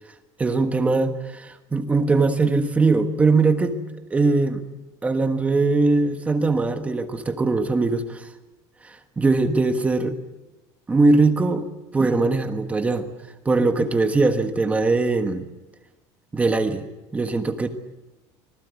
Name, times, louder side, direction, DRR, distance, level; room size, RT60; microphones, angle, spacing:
voice 1, 0.4-3.8 4.1-4.6 5.0-8.3 8.9-10.2 10.9-13.1 13.4-15.5 16.3-16.8 17.1-17.7, right 3 dB, 15° right, 7 dB, 1.4 m, -21 dB
25.5 x 19.5 x 8.4 m, 1.1 s
cardioid pair, 160°, 10 cm